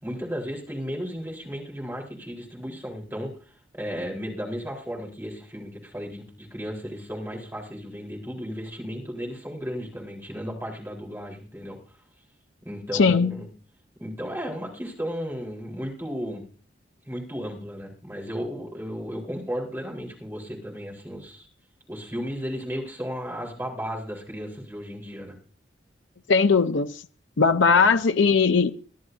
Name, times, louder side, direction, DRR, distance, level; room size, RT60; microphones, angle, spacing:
voice 1, 0.0-11.8 12.6-13.5 14.0-16.4 17.1-21.5 21.9-25.4 27.7-27.9, equal, 10° right, 4.0 m, -34 dB
voice 2, 12.9-13.3 26.3-27.0 27.4-28.7, left 5 dB, 90° left, 0.6 m, -19 dB
22.0 x 12.5 x 2.7 m
head